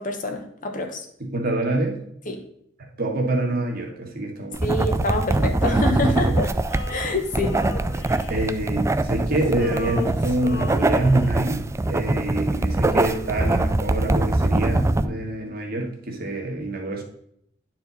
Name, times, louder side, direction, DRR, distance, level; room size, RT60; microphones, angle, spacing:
voice 1, 0.0-1.0 2.3-2.4 4.6-6.5 6.9-7.6, left 2 dB, 45° left, 4 dB, 1.0 m, -26 dB
voice 2, 1.2-2.0 2.8-4.7 5.4-6.3 8.3-17.0, right 2 dB, 50° right, 1 dB, 1.5 m, -26 dB
Pen click and writing, 4.5-15.1, right 2 dB, 15° right, 0.3 m, -23 dB
Male singing, 6.7-9.1 9.4-11.6, left 3 dB, 65° left, 0.9 m, -36 dB
9.7 x 4.5 x 4.1 m, 0.71 s
head